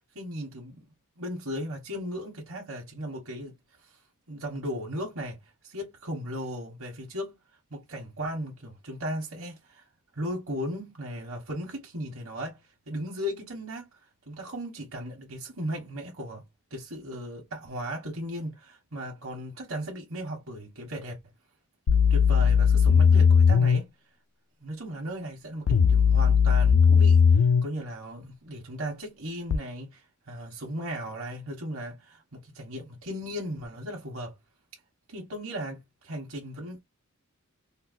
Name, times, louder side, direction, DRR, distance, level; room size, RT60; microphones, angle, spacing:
voice 1, 0.1-0.9 1.2-4.0 4.3-7.4 7.7-9.9 10.1-13.9 14.3-21.2 22.1-23.9 24.6-34.3 34.7-34.8 35.1-36.8, equal, 70° right, 1.1 m, -36 dB
sound 1, 21.9-23.8 25.7-27.7 29.5-29.6, left 6 dB, 70° left, 0.3 m, -18 dB
3.8 x 2.1 x 2.5 m
head